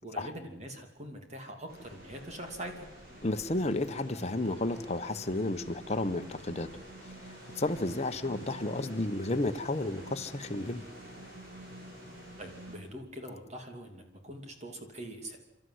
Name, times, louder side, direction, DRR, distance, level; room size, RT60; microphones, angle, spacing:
voice 1, 0.0-2.9 12.4-15.4, right 1 dB, 35° right, 4 dB, 2.9 m, -43 dB
sound 1, 1.7-12.8, right 1 dB, 50° right, 7.2 m, -48 dB
voice 2, 3.2-6.7 7.6-10.8, left 2 dB, 35° left, 7 dB, 1.1 m, -32 dB
30.0 x 13.0 x 9.6 m, 1.0 s
head